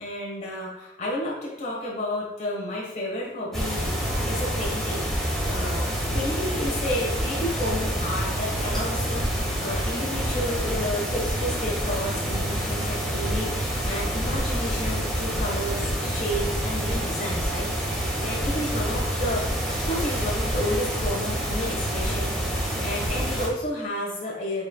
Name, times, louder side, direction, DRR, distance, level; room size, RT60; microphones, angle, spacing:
voice 1, 0.0-5.9 6.1-24.7, left 1 dB, 40° left, -4 dB, 1.5 m, -31 dB
sound 1, 3.5-23.5, equal, ahead, 1.7 m, -27 dB
8.2 x 4.9 x 2.3 m, 0.96 s
head